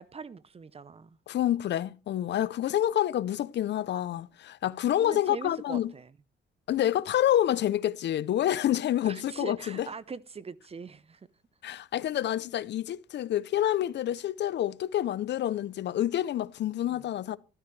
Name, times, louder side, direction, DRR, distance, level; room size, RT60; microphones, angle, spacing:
voice 1, 0.0-1.2 5.0-6.2 9.0-11.3 16.8-17.1, right 5 dB, 30° right, 0.7 m, -42 dB
voice 2, 1.3-5.9 6.7-9.9 11.6-17.4, left 12 dB, 60° left, 0.6 m, -28 dB
13.0 x 12.5 x 3.2 m
cardioid pair, 90°, 20 cm